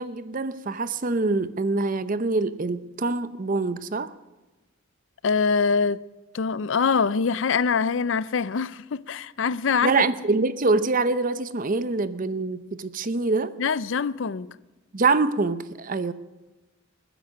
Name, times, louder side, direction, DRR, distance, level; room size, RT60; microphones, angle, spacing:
voice 1, 0.0-4.1 9.8-13.5 14.9-16.1, right 3 dB, 40° right, 0.7 m, -25 dB
voice 2, 5.2-6.0 6.3-10.0 13.6-14.5, left 5 dB, 65° left, 0.5 m, -24 dB
21.5 x 10.0 x 6.2 m
head